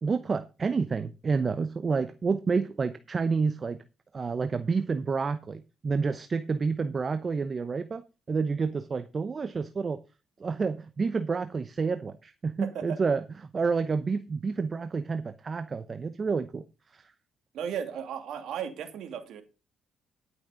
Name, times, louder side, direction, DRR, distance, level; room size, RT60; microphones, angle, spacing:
voice 1, 0.0-3.8 4.1-10.0 10.4-16.6 16.9-17.1, right 4 dB, 40° right, 12 dB, 0.8 m, -29 dB
voice 2, 12.6-13.0 17.5-19.4, right 8 dB, 75° right, 6 dB, 2.6 m, -35 dB
12.0 x 6.5 x 5.1 m, 0.30 s
cardioid pair, 85°, 0 cm